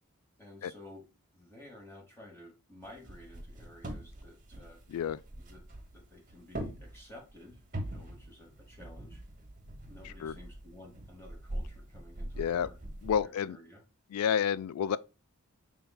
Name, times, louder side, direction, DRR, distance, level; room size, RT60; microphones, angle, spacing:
voice 1, 0.4-1.0 1.3-4.8 5.3-5.6 5.9-9.2 9.8-12.8 13.2-13.8, left 1 dB, 10° left, 1.0 m, -53 dB
sound 1, 2.8-13.2, right 1 dB, 35° right, 0.9 m, -43 dB
voice 2, 4.9-5.2 10.0-10.4 12.4-12.7 13.0-13.6 14.1-15.0, left 8 dB, 80° left, 0.3 m, -30 dB
4.5 x 3.6 x 2.2 m
head